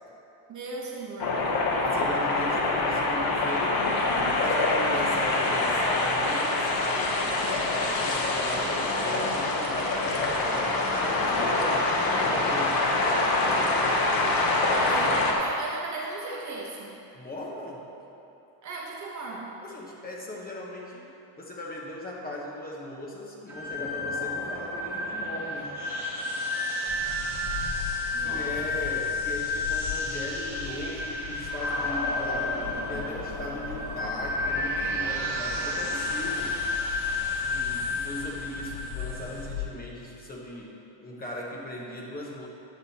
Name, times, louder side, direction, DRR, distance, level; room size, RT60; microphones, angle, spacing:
voice 1, 0.5-1.4 14.7-17.0 18.6-19.5 28.1-28.5, right 3 dB, 35° right, -2 dB, 1.1 m, -37 dB
sound 1, 1.2-15.3, left 2 dB, 45° left, 1.2 m, -25 dB
voice 2, 1.8-4.0 4.4-13.3 17.1-17.9 19.6-21.1 21.4-25.8 28.2-36.6 37.4-42.5, left 1 dB, 20° left, -2 dB, 1.1 m, -38 dB
sound 2, 23.5-39.4, left 2 dB, 5° right, 1.9 m, -31 dB
sound 3, 26.9-39.7, left 7 dB, 60° left, 0.9 m, -40 dB
10.0 x 7.5 x 4.2 m, 2.8 s
cardioid pair, 155°, 49 cm